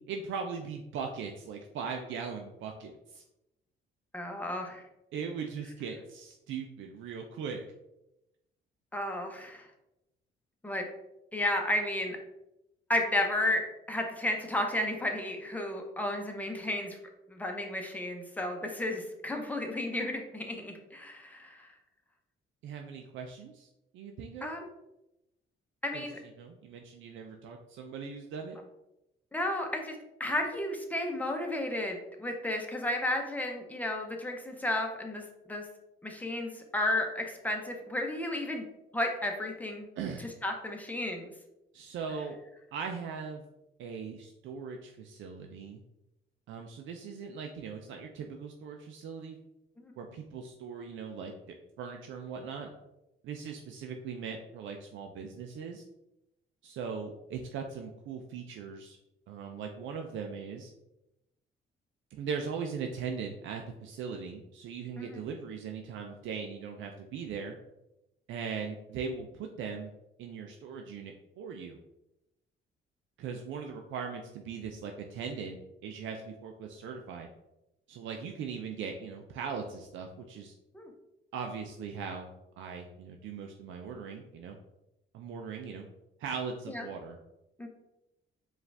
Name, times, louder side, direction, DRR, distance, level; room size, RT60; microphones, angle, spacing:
voice 1, 0.1-3.2 5.1-7.6 22.6-24.5 25.9-26.1 26.4-28.6 40.0-40.2 41.7-42.4 42.7-43.4 43.8-45.8 46.5-49.4 50.0-51.3 51.8-52.7 53.2-55.8 56.6-59.0 59.3-60.7 62.1-67.6 68.3-69.9 70.2-71.8 73.2-77.3 77.9-80.5 81.3-82.3 82.6-84.6 85.1-85.9 86.2-87.2, right 6 dB, 75° right, 3 dB, 0.5 m, -39 dB
voice 2, 4.1-4.8 8.9-9.7 10.6-10.8 11.3-12.2 12.9-13.6 13.9-17.0 17.3-21.7 24.4-24.7 25.8-26.2 29.3-29.9 30.2-35.2 35.5-35.7 36.0-38.6 38.9-39.8 40.4-41.2 49.8-49.9 65.0-65.2 80.7-80.9 86.7-86.8 87.6-87.7, left 1 dB, 10° left, 2 dB, 0.8 m, -33 dB
4.8 x 2.5 x 3.3 m, 0.90 s
cardioid pair, 90°, 20 cm